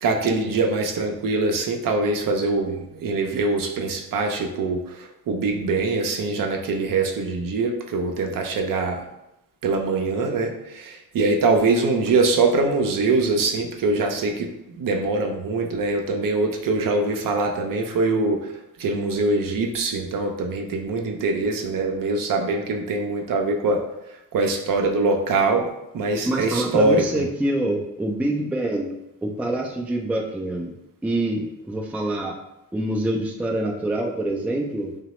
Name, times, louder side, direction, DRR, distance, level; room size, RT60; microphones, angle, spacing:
voice 1, 0.0-9.0 9.6-14.5 14.8-18.4 18.8-23.8 24.3-25.7 25.9-27.2, right 3 dB, 55° right, 3 dB, 0.6 m, -23 dB
voice 2, 26.2-28.9 29.2-30.7 31.0-32.4 32.7-34.9, right 1 dB, 5° right, 1 dB, 0.4 m, -25 dB
2.8 x 2.0 x 3.0 m, 0.89 s
supercardioid pair, 60°, 40 cm